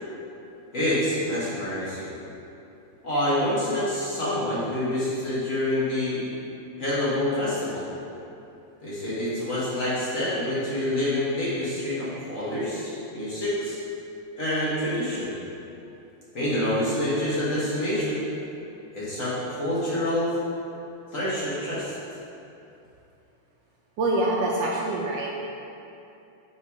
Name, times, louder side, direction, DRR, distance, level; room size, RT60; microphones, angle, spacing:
voice 1, 0.7-2.1 3.0-6.2 6.8-7.9 8.8-13.8 14.4-15.4 16.3-18.2 18.9-20.3 21.1-21.9, left 1 dB, 40° left, -9 dB, 1.7 m, -27 dB
voice 2, 24.0-25.3, right 2 dB, 70° right, -3 dB, 1.2 m, -25 dB
5.8 x 4.4 x 4.8 m, 2.8 s
omnidirectional pair, 2.3 m